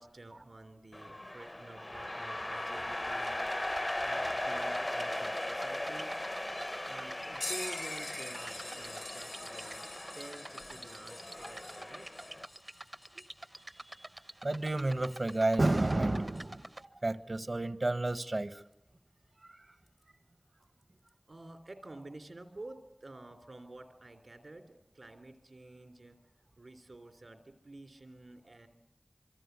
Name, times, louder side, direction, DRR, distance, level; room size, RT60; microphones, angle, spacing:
voice 1, 0.0-6.2 6.9-9.9 10.2-12.1 13.1-13.3 21.3-26.2 26.6-28.7, right 2 dB, 85° right, 7 dB, 3.2 m, -50 dB
sound 1, 0.9-12.5, left 1 dB, 40° left, 1.1 m, -38 dB
sound 2, 3.2-16.8, right 1 dB, 45° right, 0.9 m, -48 dB
sound 3, 7.4-15.6 16.3-16.5 18.7-18.8 19.9-20.0 21.1-21.2, left 2 dB, 85° left, 2.7 m, -46 dB
voice 2, 14.4-16.7 17.0-18.6, right 2 dB, 65° right, 12 dB, 1.2 m, -30 dB
26.0 x 24.0 x 8.1 m, 0.81 s
wide cardioid pair, 40°, 0 cm